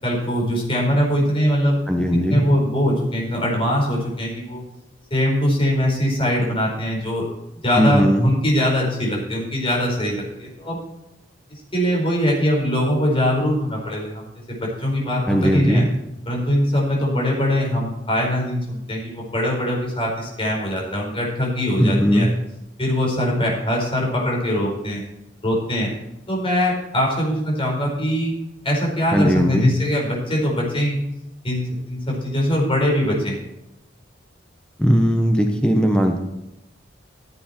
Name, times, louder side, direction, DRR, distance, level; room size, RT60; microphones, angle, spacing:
voice 1, 0.0-1.8 2.3-4.6 5.1-7.3 7.6-10.8 11.7-15.8 16.3-22.3 22.8-25.0 25.4-25.9 26.3-28.3 28.6-31.0 31.4-33.4, equal, 30° left, -2 dB, 4.7 m, -22 dB
voice 2, 1.9-2.4 7.8-8.3 15.3-15.9 21.8-22.3 29.1-29.7 34.8-36.2, equal, 5° left, 3 dB, 1.0 m, -18 dB
15.0 x 8.1 x 4.5 m, 0.90 s
head